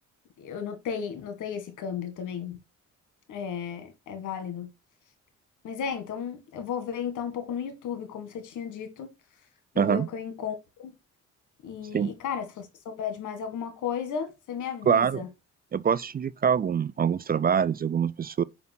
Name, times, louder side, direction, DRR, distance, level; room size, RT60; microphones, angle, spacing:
voice 1, 0.4-2.6 3.3-4.7 5.6-9.1 9.8-10.9 11.6-15.3, left 7 dB, 80° left, 1.9 m, -34 dB
voice 2, 9.8-10.1 11.9-12.1 14.8-15.2 15.7-18.4, right 7 dB, 30° right, 0.4 m, -24 dB
5.6 x 5.4 x 6.1 m
cardioid pair, 90°, 30 cm